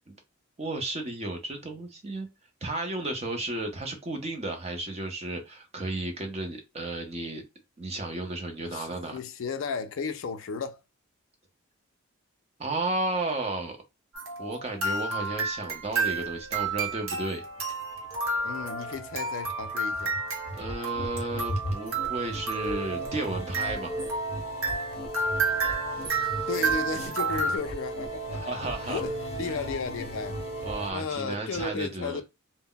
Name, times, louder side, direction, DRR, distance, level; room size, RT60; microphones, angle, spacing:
voice 1, 0.6-2.3 2.6-7.4 7.8-9.2 12.6-13.8 14.4-17.4 20.6-24.0 28.3-29.0 29.5-29.6 30.6-32.2, right 2 dB, 30° right, 0.6 m, -33 dB
voice 2, 8.6-10.8 18.4-20.2 26.5-28.4 28.8-30.4 30.9-32.2, left 5 dB, 65° left, 0.4 m, -34 dB
sound 1, 14.1-27.6, right 3 dB, 80° right, 0.9 m, -31 dB
sound 2, 16.7-30.9, right 1 dB, 30° left, 0.7 m, -36 dB
2.1 x 2.1 x 3.6 m
head